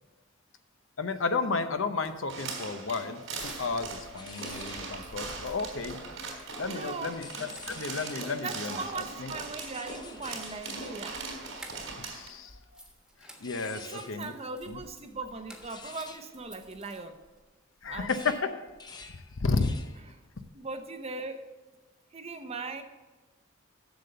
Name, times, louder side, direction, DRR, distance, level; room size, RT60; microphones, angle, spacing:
voice 1, 1.0-6.0 6.6-9.3 12.0-12.6 13.2-14.3 14.7-14.8 17.8-18.5 19.4-19.7, left 4 dB, 70° left, 9 dB, 0.8 m, -32 dB
sound 1, 1.9-4.0 4.3-6.6 7.0-7.1 7.4-8.3 9.9-12.2 12.5-17.4, right 1 dB, 5° right, 1.3 m, -54 dB
sound 2, 2.3-12.3, right 4 dB, 80° right, 3.3 m, -40 dB
sound 3, 3.4-8.4 8.7-17.4 17.8-20.1 20.4-20.8, left 3 dB, 20° left, 0.7 m, -50 dB
voice 2, 6.6-7.2 8.4-11.2 13.6-17.2 17.9-18.3 20.5-21.5 22.1-22.8, right 3 dB, 30° right, 7 dB, 0.8 m, -39 dB
7.9 x 6.8 x 6.8 m, 1.2 s
head